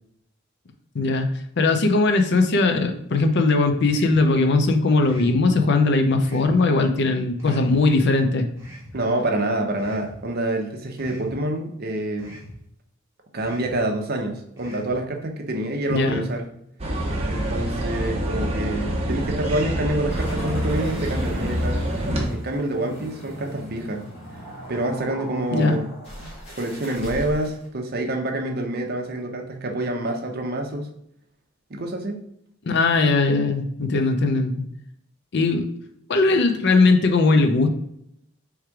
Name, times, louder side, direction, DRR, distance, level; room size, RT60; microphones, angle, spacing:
voice 1, 0.9-1.3 1.6-8.5 15.9-16.3 25.5-25.8 32.7-34.6 35.3-35.7 36.1-37.7, left 3 dB, 55° left, 6 dB, 0.5 m, -19 dB
sound 1, 3.8-4.2 5.0-5.4 6.2-6.6 7.4-7.8 8.6-8.9 9.8-10.1 11.0-11.3 12.2-12.5 13.4-13.7 14.6-14.9, equal, 15° right, 1.2 m, -43 dB
voice 2, 8.9-12.4 13.3-16.4 17.3-21.9 22.3-24.0 24.7-25.9 26.2-26.3 26.6-30.9 31.7-32.2, right 1 dB, 50° right, 3 dB, 0.7 m, -27 dB
sound 2, 16.8-22.3, right 1 dB, 30° right, 1.0 m, -26 dB
sound 3, 20.1-27.7, equal, 30° left, 1.7 m, -40 dB
3.6 x 3.2 x 4.5 m, 0.75 s
head